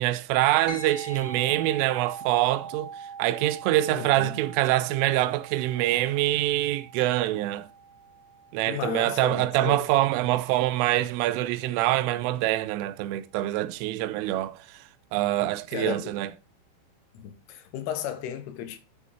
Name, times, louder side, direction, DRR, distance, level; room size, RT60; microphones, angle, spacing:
voice 1, 0.0-7.7 8.5-14.8 15.1-16.3, right 15 dB, 85° right, 3.2 m, -25 dB
sound 1, 0.7-10.4, right 4 dB, 15° right, 3.3 m, -43 dB
voice 2, 3.9-4.4 8.7-9.8 15.7-16.1 17.2-18.8, left 10 dB, 85° left, 3.6 m, -34 dB
9.4 x 8.3 x 2.8 m
omnidirectional pair, 5.6 m